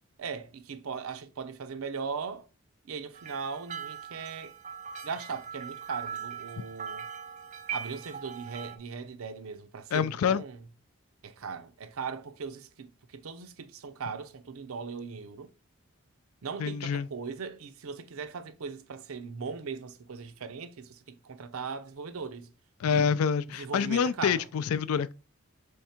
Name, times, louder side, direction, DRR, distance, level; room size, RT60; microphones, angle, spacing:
voice 1, 0.2-2.5 2.8-4.5 5.0-7.1 7.7-10.6 11.2-15.5 16.4-22.5 22.9-23.1 23.5-24.5, right 5 dB, 85° right, 0.5 m, -39 dB
sound 1, 3.1-8.8, right 7 dB, 35° right, 0.4 m, -40 dB
voice 2, 9.9-10.4 16.6-17.1 22.8-25.1, left 7 dB, 85° left, 0.3 m, -27 dB
3.6 x 3.5 x 4.3 m
head